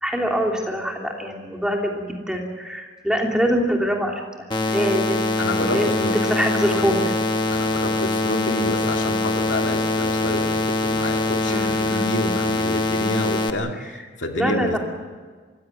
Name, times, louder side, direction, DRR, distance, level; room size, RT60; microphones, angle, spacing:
voice 1, 0.0-5.3 5.7-7.1 11.4-12.3 14.4-14.8, equal, 5° right, 0 dB, 3.0 m, -24 dB
sound 1, 4.5-13.5, left 2 dB, 25° left, 1.1 m, -23 dB
voice 2, 5.4-6.2 6.7-7.1 7.5-13.8 14.2-14.8, left 1 dB, 80° left, 3 dB, 2.3 m, -28 dB
24.0 x 16.0 x 9.2 m, 1.5 s
head